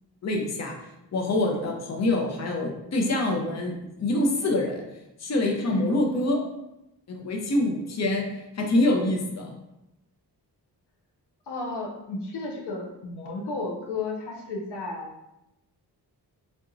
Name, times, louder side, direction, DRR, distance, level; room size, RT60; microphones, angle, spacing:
voice 1, 0.2-0.7 1.1-3.7 4.0-4.8 5.2-6.4 7.1-8.3 8.6-9.5, left 1 dB, 40° left, 1 dB, 0.7 m, -25 dB
voice 2, 5.6-5.9 11.5-15.1, left 3 dB, 75° left, 0 dB, 0.7 m, -33 dB
3.5 x 2.8 x 2.5 m, 0.90 s
cardioid pair, 70°, 41 cm